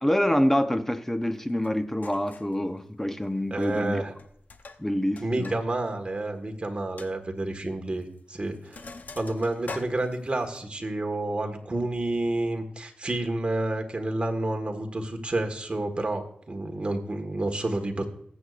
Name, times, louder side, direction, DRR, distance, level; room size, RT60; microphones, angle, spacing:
voice 1, 0.0-4.0 4.8-5.5, equal, 10° left, 8 dB, 0.8 m, -26 dB
Sink (filling or washing), 1.6-1.7 2.0-2.6 3.5-3.9 4.2-5.6 5.9-6.0 6.4-6.5 7.0-7.1 8.0-8.2 8.5-10.6, left 3 dB, 60° left, 0.8 m, -43 dB
voice 2, 3.5-4.1 5.2-8.8 9.1-18.1, right 2 dB, 35° right, 4 dB, 1.6 m, -29 dB
20.0 x 8.0 x 2.5 m, 0.66 s
wide cardioid pair, 85°, 3 cm